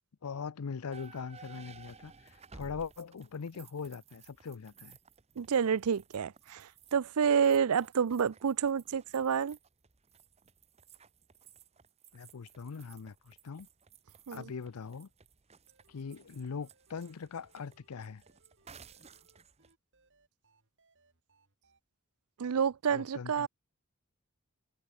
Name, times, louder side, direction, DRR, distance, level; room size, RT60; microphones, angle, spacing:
voice 1, 0.2-5.0 12.1-13.7 14.3-15.1 15.9-18.2 22.9-23.5, left 5 dB, 80° left, 0.6 m, -41 dB
sound 1, 0.9-19.7, right 5 dB, 30° right, 0.9 m, -57 dB
voice 2, 5.4-9.6 14.3-14.5 22.4-23.5, right 7 dB, 80° right, 0.5 m, -29 dB
sound 2, 15.7-21.8, right 3 dB, 55° right, 5.8 m, -71 dB
head